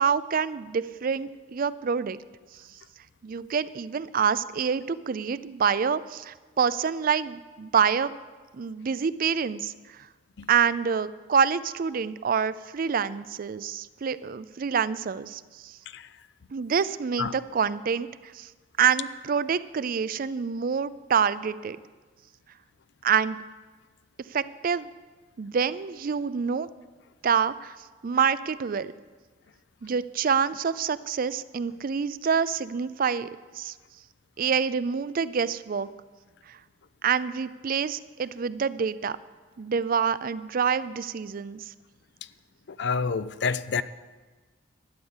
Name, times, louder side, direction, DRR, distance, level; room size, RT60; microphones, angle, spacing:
voice 1, 0.0-2.2 3.2-8.1 8.5-9.7 10.5-15.7 16.5-18.1 18.3-18.5 18.8-21.8 23.0-23.4 24.3-24.9 25.4-26.7 27.2-27.8 28.0-28.9 29.8-33.3 33.6-33.7 34.4-35.9 37.0-39.2 39.6-41.6, right 6 dB, 50° right, 16 dB, 0.4 m, -26 dB
voice 2, 42.7-43.8, left 5 dB, 65° left, 15 dB, 0.5 m, -28 dB
12.0 x 9.5 x 7.3 m, 1.3 s
head